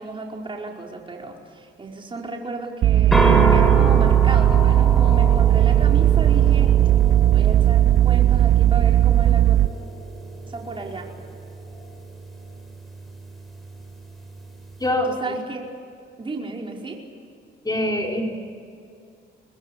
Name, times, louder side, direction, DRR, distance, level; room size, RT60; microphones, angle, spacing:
voice 1, 0.0-6.7 7.3-9.6 10.5-11.1 15.1-15.6 16.2-17.0, right 2 dB, 25° right, -1 dB, 5.0 m, -33 dB
sound 1, 2.8-9.7, right 12 dB, 60° right, 0.6 m, -16 dB
sound 2, 3.1-14.9, right 2 dB, ahead, 6.2 m, -28 dB
voice 2, 14.8-15.4 17.6-18.4, left 1 dB, 20° left, 0 dB, 4.4 m, -24 dB
25.0 x 20.5 x 8.5 m, 2.4 s
cardioid pair, 90°, 20 cm